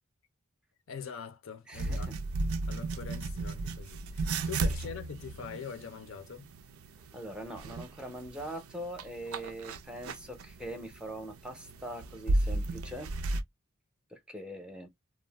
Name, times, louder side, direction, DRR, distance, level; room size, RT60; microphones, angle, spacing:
voice 1, 0.9-2.1 2.7-6.5, left 6 dB, 65° left, 0.5 m, -43 dB
voice 2, 1.7-2.2 7.1-13.1 14.1-14.9, right 1 dB, 5° right, 0.6 m, -42 dB
sound 1, 1.7-13.4, right 2 dB, 80° right, 0.5 m, -35 dB
2.3 x 2.1 x 3.3 m
head